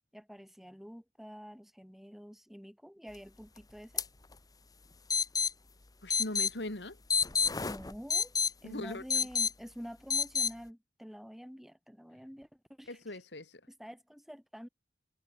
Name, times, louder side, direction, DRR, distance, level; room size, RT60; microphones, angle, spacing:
voice 1, 0.1-4.0 7.6-8.3 8.6-13.0 13.7-14.7, equal, ahead, 2.4 m, -48 dB
sound 1, 4.0-4.1 4.3-4.4 5.1-5.5 6.1-6.5 7.1-8.5 9.1-9.5 10.1-10.5, left 6 dB, 20° left, 0.9 m, -28 dB
voice 2, 6.0-7.0 8.6-9.0 12.9-13.6, left 1 dB, 75° left, 3.0 m, -40 dB
head